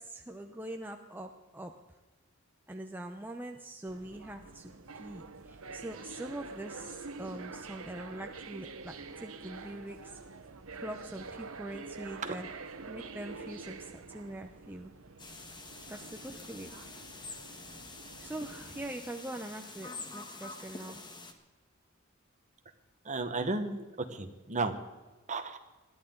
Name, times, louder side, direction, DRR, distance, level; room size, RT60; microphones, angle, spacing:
voice 1, 0.0-1.7 2.7-10.2 10.7-12.5 12.9-14.9 15.9-16.8 18.2-21.0, right 1 dB, 10° right, 3 dB, 0.8 m, -43 dB
sound 1, 3.9-18.9, right 4 dB, 75° right, 1.1 m, -47 dB
sound 2, 15.2-21.3, left 3 dB, 20° left, 1.4 m, -47 dB
voice 2, 23.0-23.8 24.1-24.7 25.3-25.6, right 3 dB, 35° right, 7 dB, 1.4 m, -33 dB
21.0 x 13.0 x 3.9 m, 1.2 s
head